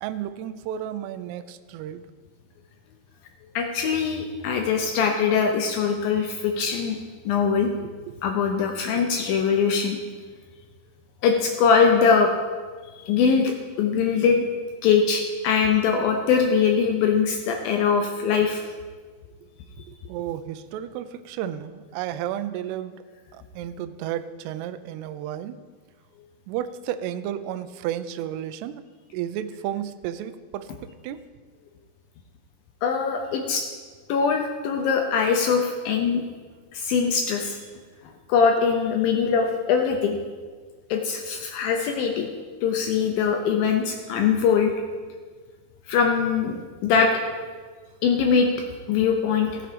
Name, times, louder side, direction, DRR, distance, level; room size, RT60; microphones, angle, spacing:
voice 1, 0.0-2.1 7.8-8.1 9.0-9.1 19.9-23.0 23.3-25.6 26.5-28.8 29.1-30.7 31.0-31.2, right 11 dB, 80° right, 10 dB, 2.5 m, -32 dB
voice 2, 3.6-7.0 7.3-7.7 8.2-10.0 11.2-12.3 13.0-14.4 14.8-18.6 32.8-33.7 34.1-36.2 36.7-37.6 38.3-40.2 40.9-42.3 42.6-44.7 45.9-47.5 48.0-48.5 48.9-49.6, left 6 dB, 85° left, 3 dB, 2.0 m, -22 dB
15.5 x 7.1 x 5.1 m, 1.5 s
omnidirectional pair, 5.1 m